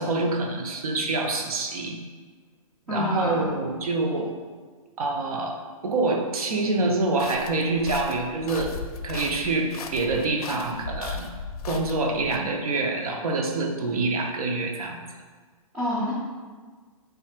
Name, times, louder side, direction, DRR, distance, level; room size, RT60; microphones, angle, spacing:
voice 1, 0.0-2.0 2.9-4.3 5.0-8.8 9.0-11.3 11.6-15.0, right 3 dB, 80° right, 2 dB, 0.7 m, -26 dB
voice 2, 2.9-3.5 13.5-13.7 15.7-16.1, left 1 dB, 5° right, -11 dB, 0.3 m, -28 dB
sound 1, 7.2-12.4, left 5 dB, 85° left, 0.4 m, -37 dB
3.2 x 2.4 x 4.3 m, 1.5 s
hypercardioid pair, 160°, 18 cm